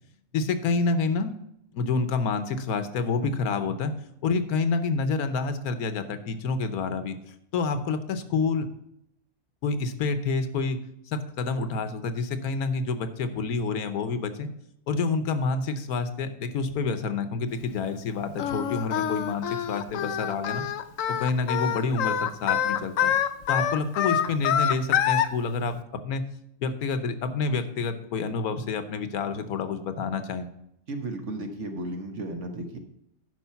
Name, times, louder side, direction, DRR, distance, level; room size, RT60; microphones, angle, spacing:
voice 1, 0.3-1.3 1.7-3.9 4.2-7.2 7.5-8.7 9.6-10.8 11.1-14.5 14.9-20.6 21.1-22.2 22.4-23.1 23.5-26.2 26.6-30.5, left 4 dB, 85° left, 10 dB, 1.3 m, -28 dB
Singing, 18.4-25.3, left 9 dB, 70° left, 1.0 m, -26 dB
voice 2, 30.9-32.8, right 2 dB, 55° right, 4 dB, 1.5 m, -34 dB
11.0 x 5.1 x 5.7 m, 0.78 s
omnidirectional pair, 1.5 m